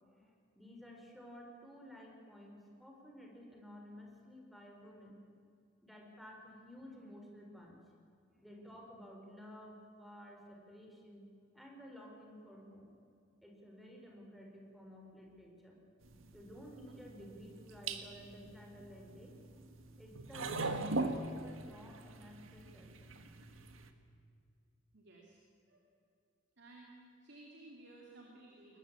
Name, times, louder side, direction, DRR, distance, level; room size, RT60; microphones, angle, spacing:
voice 1, 0.1-5.2 5.8-7.8 8.3-11.3 11.5-12.9 13.4-15.8 16.3-19.3 20.0-22.9, equal, ahead, 0 dB, 4.2 m, -54 dB
sound 1, 16.0-23.9, right 2 dB, 85° right, 1.7 m, -42 dB
voice 2, 24.9-25.4 25.7-25.9 26.6-28.8, right 2 dB, 60° right, -1 dB, 3.1 m, -56 dB
22.0 x 20.0 x 8.6 m, 2.4 s
head